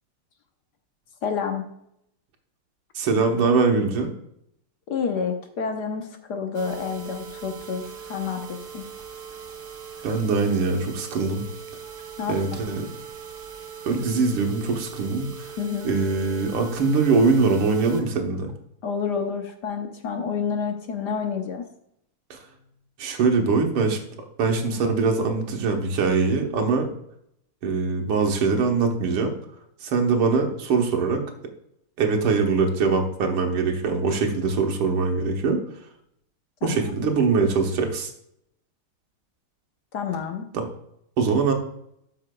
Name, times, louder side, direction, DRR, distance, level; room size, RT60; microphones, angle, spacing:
voice 1, 1.2-1.7 4.9-8.8 12.2-12.4 15.6-15.9 18.8-21.6 36.6-36.8 39.9-40.5, left 6 dB, 60° left, 5 dB, 1.3 m, -29 dB
voice 2, 3.0-4.1 10.0-11.4 12.3-12.8 13.9-15.5 15.8-18.5 22.3-22.4 23.0-24.0 24.4-26.9 27.6-29.3 29.8-31.2 32.0-35.6 36.6-38.1 40.5-40.7 41.2-41.5, right 4 dB, 90° right, 3 dB, 2.1 m, -22 dB
sound 1, 6.5-18.0 18.5-18.6 19.0-19.1 19.5-19.6, right 7 dB, 70° right, 1.9 m, -40 dB
12.5 x 5.9 x 2.2 m, 0.74 s
omnidirectional pair, 2.3 m